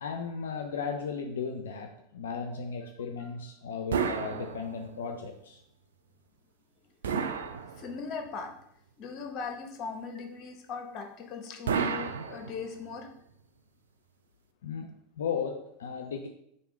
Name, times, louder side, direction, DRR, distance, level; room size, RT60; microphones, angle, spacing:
voice 1, 0.0-5.6 14.6-16.3, left 6 dB, 75° left, 4 dB, 0.3 m, -36 dB
sound 1, 3.9-5.1 7.0-8.3 11.7-12.9, right 6 dB, 75° right, 0.3 m, -32 dB
voice 2, 7.7-8.6 9.0-13.1, left 5 dB, 40° left, 5 dB, 0.7 m, -39 dB
3.4 x 2.6 x 4.3 m, 0.75 s
hypercardioid pair, 90°, 0 cm